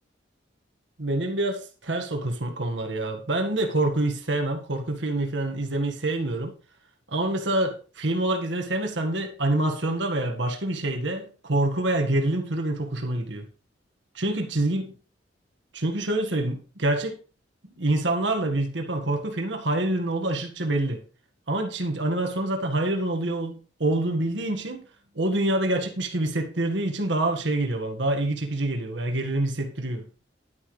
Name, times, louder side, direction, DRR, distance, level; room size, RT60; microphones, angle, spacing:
voice 1, 1.0-6.5 7.1-13.5 14.2-14.9 15.7-17.2 17.8-21.0 21.5-24.8 25.2-30.1, right 1 dB, 80° right, 1.8 m, -26 dB
11.0 x 10.0 x 3.3 m
head